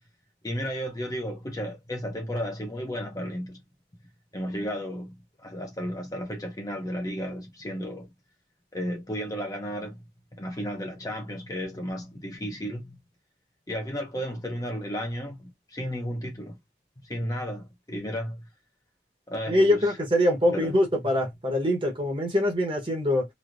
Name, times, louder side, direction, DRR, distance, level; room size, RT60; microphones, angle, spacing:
voice 1, 0.4-3.6 4.3-5.2 5.4-8.1 8.7-10.0 10.3-13.0 13.7-16.5 17.0-18.5 19.3-20.0 20.5-20.7, equal, 20° left, 0.7 m, -33 dB
voice 2, 19.5-23.2, left 1 dB, 30° right, 1.1 m, -23 dB
3.1 x 2.7 x 2.5 m
head